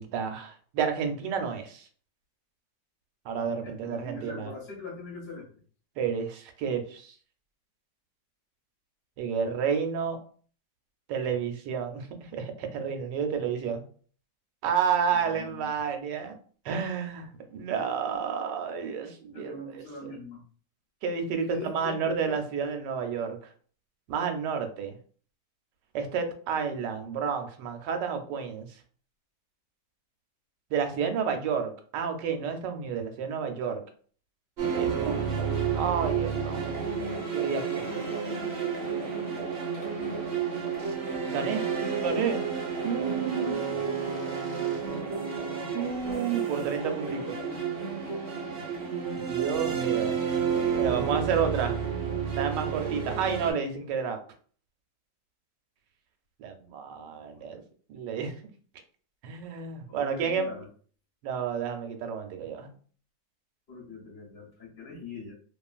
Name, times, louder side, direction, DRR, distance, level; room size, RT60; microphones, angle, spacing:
voice 1, 0.0-1.9 3.2-4.5 6.0-7.1 9.2-10.2 11.1-13.8 14.6-16.3 16.6-19.8 21.0-23.4 24.1-24.9 25.9-28.7 30.7-33.8 34.7-35.2 35.7-36.7 37.3-37.9 41.3-41.6 42.0-42.4 42.8-43.5 45.7-47.2 49.3-50.1 50.8-51.8 52.4-54.2 56.4-57.6 57.9-58.3 59.2-60.5 61.2-62.7, right 6 dB, 85° right, 5 dB, 1.2 m, -30 dB
voice 2, 3.6-5.5 15.1-15.8 19.3-20.4 21.5-22.4 38.6-39.4 39.7-39.9 42.0-42.1 43.3-43.8 44.5-45.2 47.0-47.6 48.0-48.7 52.9-53.2 57.0-57.4 59.9-60.7 63.7-65.3, left 3 dB, 50° left, -1 dB, 0.8 m, -43 dB
sound 1, 34.6-53.5, right 6 dB, 50° right, 0.7 m, -30 dB
2.7 x 2.4 x 2.3 m, 0.43 s
omnidirectional pair, 1.8 m